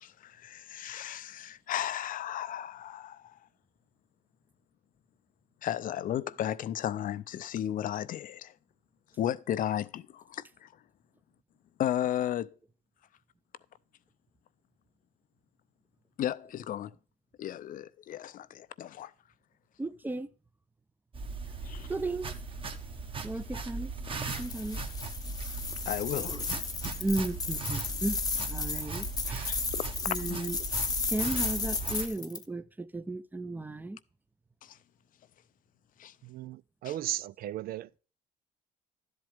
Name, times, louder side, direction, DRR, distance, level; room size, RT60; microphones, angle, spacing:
voice 1, 0.0-3.4 5.6-8.5 9.2-10.7 11.8-12.5 16.2-16.9 17.4-19.1 21.6-21.9 25.9-26.4 29.5-29.6 30.3-30.5 34.6-34.8 36.0-36.1 36.8-36.9, left 11 dB, 55° left, 0.5 m, -34 dB
voice 2, 19.8-20.3 21.9-22.3 23.2-23.9 24.4-24.8 26.3-26.4 27.0-28.2 28.5-29.6 30.1-30.6 31.0-34.0, right 2 dB, 10° right, 0.6 m, -34 dB
sound 1, 21.1-32.1, right 3 dB, 30° right, 1.3 m, -38 dB
sound 2, 24.2-32.4, left 4 dB, 20° left, 0.8 m, -34 dB
voice 3, 36.2-37.9, right 14 dB, 60° right, 0.4 m, -36 dB
12.5 x 7.9 x 3.4 m
cardioid pair, 110°, 17 cm